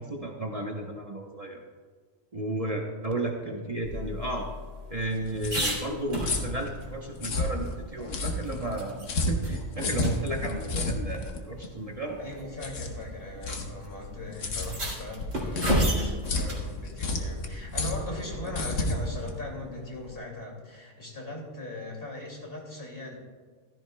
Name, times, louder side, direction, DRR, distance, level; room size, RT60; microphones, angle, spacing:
voice 1, 0.0-1.6 2.3-4.5 4.9-12.2, right 2 dB, 35° right, 0 dB, 1.0 m, -33 dB
sound 1, 3.8-6.8 7.2-7.3 7.7-9.1 9.4-9.6 10.0-10.1 11.2-11.3 12.2-12.5 13.5-13.6 13.8-13.9 14.5-16.7 19.0-19.4, equal, 85° right, 2.9 m, -32 dB
sound 2, 4.9-20.1, left 2 dB, 90° left, 1.4 m, -32 dB
voice 2, 12.2-23.2, left 2 dB, 50° left, -1 dB, 2.7 m, -39 dB
15.0 x 13.5 x 2.3 m, 1.5 s
omnidirectional pair, 1.3 m